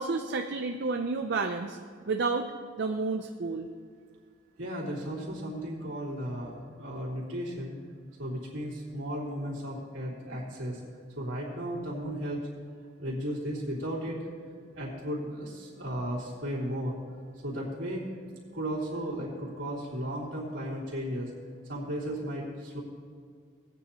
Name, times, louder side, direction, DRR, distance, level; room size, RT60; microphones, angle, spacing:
voice 1, 0.0-1.8 2.1-2.5 2.8-3.7, right 3 dB, 60° right, 5 dB, 0.6 m, -30 dB
voice 2, 4.6-7.8 8.2-10.8 11.1-12.5 13.0-14.2 14.7-17.0 17.4-18.0 18.5-21.3 21.7-22.8, equal, 80° right, -5 dB, 3.4 m, -35 dB
18.0 x 9.4 x 3.0 m, 2.1 s
head